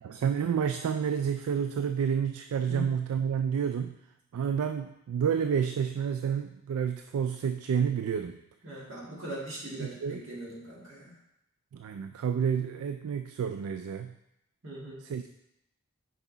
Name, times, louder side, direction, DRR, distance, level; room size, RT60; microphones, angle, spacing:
voice 1, 0.0-3.9 4.3-8.4 9.8-10.2 11.7-14.1 15.1-15.3, right 7 dB, 80° right, 8 dB, 0.3 m, -29 dB
voice 2, 8.6-11.2 14.6-15.0, right 1 dB, 60° right, -4 dB, 2.0 m, -40 dB
5.9 x 5.2 x 4.0 m, 0.83 s
head